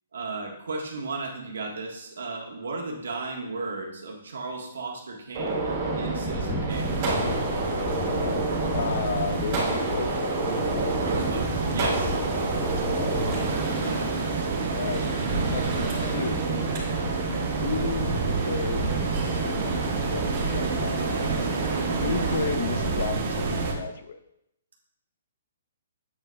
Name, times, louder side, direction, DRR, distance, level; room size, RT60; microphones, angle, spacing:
voice 1, 0.1-7.0 11.0-12.2 13.7-14.2, right 3 dB, 80° right, 0 dB, 1.4 m, -35 dB
Gunshot gunfire, 5.3-22.4, right 3 dB, 40° right, 2.3 m, -30 dB
sound 1, 6.2-13.5, left 2 dB, 20° left, 1.0 m, -35 dB
sound 2, 6.7-23.7, right 3 dB, 55° right, 1.2 m, -30 dB
voice 2, 8.7-10.3 13.8-13.9 14.7-15.1 15.5-16.5 17.6-18.1 18.4-24.2, left 5 dB, 65° left, 9 dB, 0.6 m, -33 dB
8.3 x 5.0 x 2.3 m, 0.79 s
hypercardioid pair, 145°, 0 cm